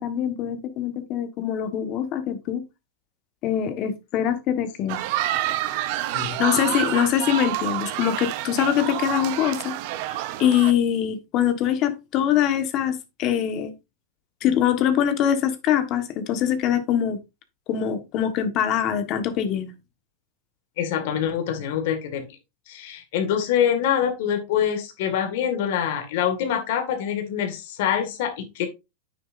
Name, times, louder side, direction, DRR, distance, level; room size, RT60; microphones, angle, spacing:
voice 1, 0.0-2.6 3.4-5.0 6.4-9.7 10.4-13.7 14.4-17.2 17.7-19.7, left 10 dB, 40° left, 1.3 m, -23 dB
sound 1, 4.9-10.7, right 14 dB, 55° right, 0.8 m, -28 dB
voice 2, 20.8-22.3 22.7-28.7, left 9 dB, 65° left, 1.9 m, -25 dB
9.2 x 6.5 x 2.6 m
supercardioid pair, 135°, 0 cm